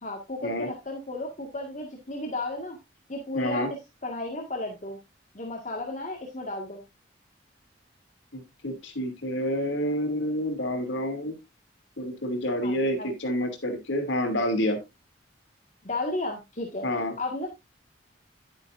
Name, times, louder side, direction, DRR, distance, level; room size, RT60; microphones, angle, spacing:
voice 1, 0.0-2.8 3.1-3.6 4.0-5.0 5.3-6.8 12.6-13.1 15.8-17.5, left 2 dB, 40° left, 0 dB, 1.9 m, -34 dB
voice 2, 3.3-3.7 8.3-11.3 12.0-14.8 16.8-17.1, equal, 85° left, 5 dB, 2.7 m, -28 dB
11.0 x 9.7 x 2.6 m, 0.22 s
head